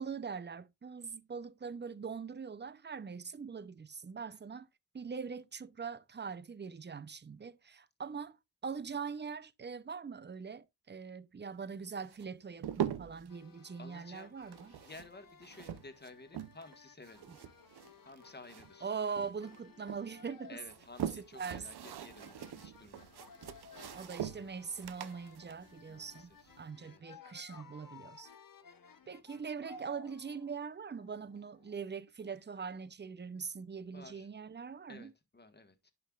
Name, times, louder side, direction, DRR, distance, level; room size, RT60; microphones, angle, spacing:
voice 1, 0.0-4.7 4.9-8.4 8.6-14.7 17.3-17.4 18.8-20.6 21.2-21.7 23.9-26.3 26.6-28.3 29.1-35.1, right 6 dB, 30° right, 0.6 m, -42 dB
sound 1, 12.0-13.3 14.4-16.8 17.0-18.9 19.2-20.0 20.6-26.6, right 9 dB, 75° right, 0.7 m, -42 dB
sound 2, 13.3-32.9, left 4 dB, 60° left, 1.0 m, -58 dB
voice 2, 13.8-14.4 14.8-17.2 18.0-18.9 20.5-23.1 25.9-27.2 33.9-34.3 34.9-35.9, left 3 dB, 25° left, 1.4 m, -54 dB
11.0 x 5.6 x 2.4 m
cardioid pair, 65°, 39 cm